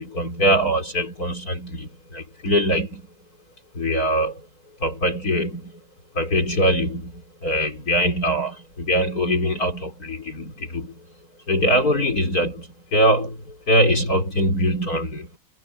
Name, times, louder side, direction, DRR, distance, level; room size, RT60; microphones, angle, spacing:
voice 1, 0.0-3.0 3.7-4.4 4.8-5.7 6.1-11.0 11.5-15.3, equal, 50° left, 4.9 m, -22 dB
omnidirectional pair, 2.0 m